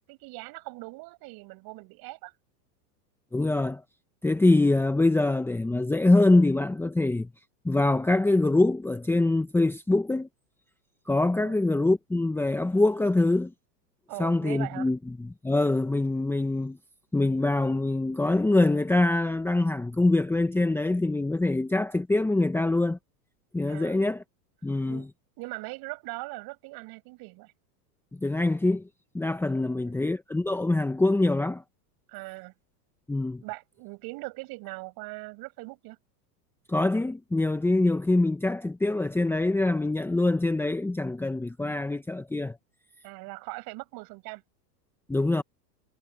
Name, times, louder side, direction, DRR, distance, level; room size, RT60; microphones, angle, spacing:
voice 1, 0.1-2.3 11.4-11.6 14.1-14.9 23.7-24.0 24.8-25.1 25.4-27.5 29.5-30.0 32.1-32.5 33.4-36.0 43.0-44.4, right 24 dB, 45° right, 6.3 m, -40 dB
voice 2, 3.3-3.8 4.2-7.3 7.6-10.3 11.1-13.5 14.2-16.8 17.1-23.0 23.5-24.2 24.6-25.1 28.2-28.8 29.1-31.6 33.1-33.4 36.7-42.6 45.1-45.4, left 2 dB, 5° left, 1.2 m, -24 dB
supercardioid pair, 125°, 49 cm